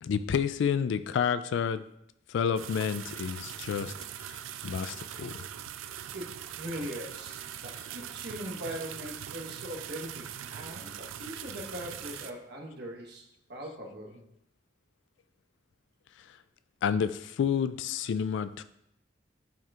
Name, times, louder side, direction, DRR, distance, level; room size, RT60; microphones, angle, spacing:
voice 1, 0.0-1.8 2.3-3.9 4.2-5.4 16.8-18.6, left 7 dB, 65° left, 13 dB, 0.3 m, -30 dB
sound 1, 2.6-12.3, right 10 dB, 85° right, 0.4 m, -41 dB
voice 2, 6.5-14.2, equal, 60° right, 0 dB, 1.3 m, -41 dB
9.2 x 4.4 x 2.5 m, 0.77 s
head